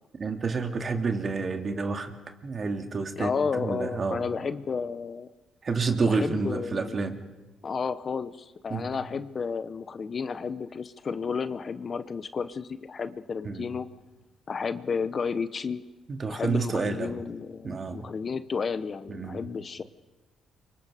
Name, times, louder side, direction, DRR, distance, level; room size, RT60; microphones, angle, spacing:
voice 1, 0.2-2.1 2.4-4.3 5.6-7.2 8.7-8.9 13.4-13.7 16.1-17.2 17.6-18.1 19.1-19.5, right 4 dB, 40° right, 5 dB, 2.4 m, -29 dB
voice 2, 3.2-5.3 6.0-7.0 7.6-13.9 14.5-15.8 16.3-19.8, left 5 dB, 40° left, 13 dB, 0.8 m, -32 dB
27.5 x 24.5 x 5.0 m, 1.1 s
cardioid pair, 90°, 0 cm